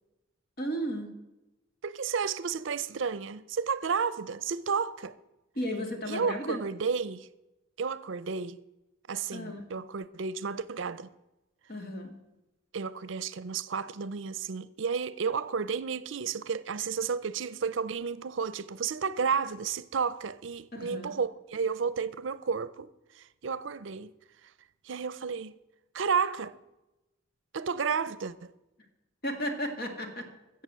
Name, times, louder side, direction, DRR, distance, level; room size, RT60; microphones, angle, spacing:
voice 1, 0.6-1.1 5.6-6.6 9.3-9.7 11.7-12.1 20.7-21.1 29.2-30.3, equal, 50° left, 2.0 m, -34 dB
voice 2, 1.8-5.1 6.1-7.3 7.8-8.6 9.1-11.1 12.7-24.1 24.8-25.5 25.9-26.6 27.5-28.5, right 6 dB, 70° right, 0.5 m, -32 dB
14.5 x 7.3 x 7.5 m
head